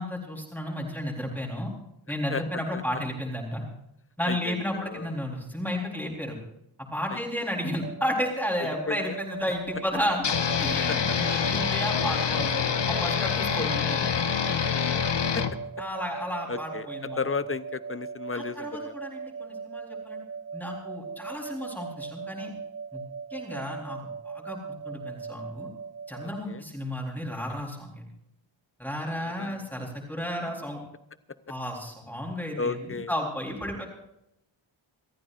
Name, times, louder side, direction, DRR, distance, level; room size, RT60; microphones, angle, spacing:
voice 1, 0.0-1.7 2.1-3.7 4.2-6.4 6.9-10.3 10.6-14.3 15.8-17.2 18.3-20.2 20.5-22.5 22.9-23.0 23.3-24.6 24.8-25.7 26.1-28.1 28.8-30.8 31.5-33.8, equal, 5° left, -2 dB, 3.8 m, -33 dB
voice 2, 2.1-2.4 2.7-2.8 4.2-5.1 7.1-7.2 8.6-9.2 10.9-11.1 13.3-13.7 15.3-15.4 16.5-16.9 17.2-19.0 26.2-26.6 29.2-29.9 32.6-33.1, left 4 dB, 25° left, 12 dB, 0.7 m, -34 dB
sound 1, 7.8-26.4, right 5 dB, 35° right, 1.1 m, -39 dB
sound 2, 10.2-15.5, left 7 dB, 60° left, 1.2 m, -26 dB
29.0 x 14.0 x 2.6 m, 0.79 s
wide cardioid pair, 170°, 49 cm